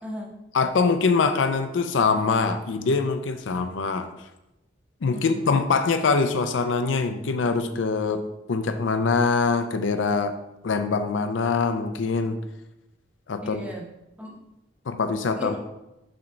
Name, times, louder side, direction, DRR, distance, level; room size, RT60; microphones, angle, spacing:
voice 1, 0.0-0.4 5.1-5.6 13.4-14.4 15.3-15.6, left 1 dB, 5° right, -3 dB, 1.2 m, -36 dB
voice 2, 0.5-4.1 5.0-10.4 10.6-12.4 13.3-13.6 14.9-15.6, left 4 dB, 75° left, 8 dB, 0.5 m, -23 dB
6.2 x 3.1 x 5.8 m, 0.92 s
head